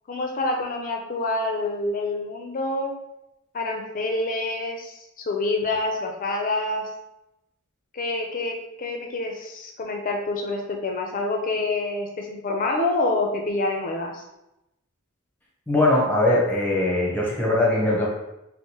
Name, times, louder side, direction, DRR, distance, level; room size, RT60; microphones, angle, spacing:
voice 1, 0.1-2.9 3.5-6.8 7.9-14.2, left 2 dB, 40° left, 2 dB, 0.5 m, -27 dB
voice 2, 15.7-18.1, left 2 dB, 10° left, -4 dB, 0.8 m, -21 dB
4.5 x 2.0 x 2.8 m, 0.91 s
head